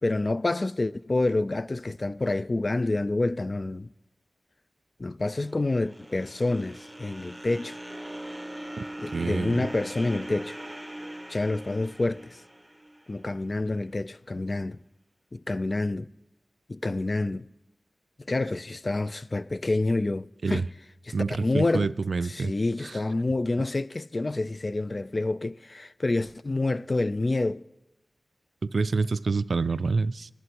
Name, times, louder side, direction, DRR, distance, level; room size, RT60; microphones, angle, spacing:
voice 1, 0.0-3.9 5.0-7.8 9.0-10.6 11.3-12.4 13.1-14.8 15.3-16.1 16.7-17.5 18.3-20.7 21.1-21.9 22.2-27.6, left 2 dB, 40° left, 0.3 m, -28 dB
sound 1, 5.2-13.5, right 1 dB, 5° right, 0.9 m, -41 dB
voice 2, 9.1-9.7 20.4-20.6 21.1-22.5 28.7-30.3, right 4 dB, 70° right, 0.3 m, -27 dB
19.0 x 11.0 x 2.9 m
cardioid pair, 55°, 0 cm